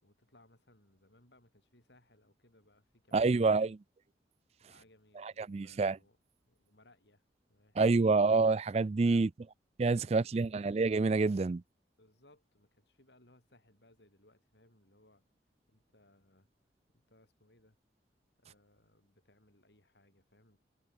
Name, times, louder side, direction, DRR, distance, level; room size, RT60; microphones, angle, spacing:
voice 1, 0.0-3.8 4.6-6.2 6.4-7.2 7.5-8.2 9.0-9.3 10.0-10.6 12.0-15.2 15.7-16.5 16.9-17.8 18.4-20.6, left 1 dB, 75° left, 7.8 m, -65 dB
voice 2, 3.1-3.7 5.4-6.0 7.8-9.3 9.8-11.6, right 3 dB, 35° right, 0.4 m, -27 dB
head